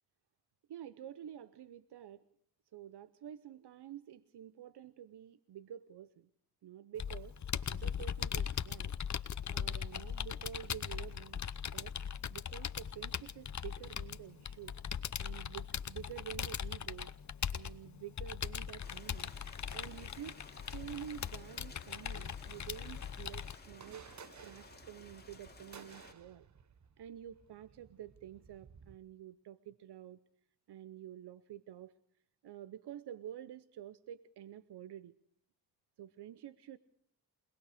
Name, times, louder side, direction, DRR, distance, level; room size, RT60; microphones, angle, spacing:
voice 1, 0.7-2.3 2.7-6.3 6.6-8.9 9.5-11.4 11.7-11.9 12.3-14.7 15.2-17.1 17.5-19.3 19.7-20.4 20.7-24.0 24.4-26.5 27.0-30.2 30.7-31.9 32.4-35.2 36.0-36.8, right 10 dB, 80° right, 16 dB, 0.8 m, -49 dB
Computer keyboard, 7.0-23.6, left 8 dB, 45° left, 0.9 m, -40 dB
Rain, 18.8-26.1, left 3 dB, 25° left, 2.7 m, -57 dB
sound 1, 23.6-29.0, right 6 dB, 45° right, 1.0 m, -57 dB
28.0 x 19.5 x 4.9 m, 0.66 s
cardioid pair, 75°, 39 cm